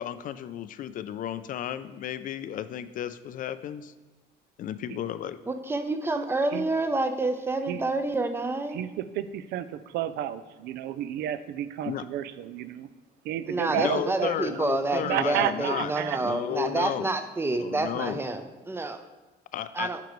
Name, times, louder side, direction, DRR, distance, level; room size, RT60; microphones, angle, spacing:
voice 1, 0.0-3.9 4.6-5.4 11.9-12.0 13.7-15.9 16.2-17.1 17.6-18.2 19.5-19.9, left 11 dB, 55° left, 13 dB, 0.4 m, -33 dB
voice 2, 5.5-8.8 13.5-19.0 19.7-20.0, right 2 dB, 15° right, 8 dB, 0.5 m, -28 dB
voice 3, 8.7-12.9 13.2-14.6 15.0-16.2, right 11 dB, 80° right, 14 dB, 0.4 m, -31 dB
9.5 x 5.2 x 3.1 m, 1.2 s
cardioid pair, 110°, 17 cm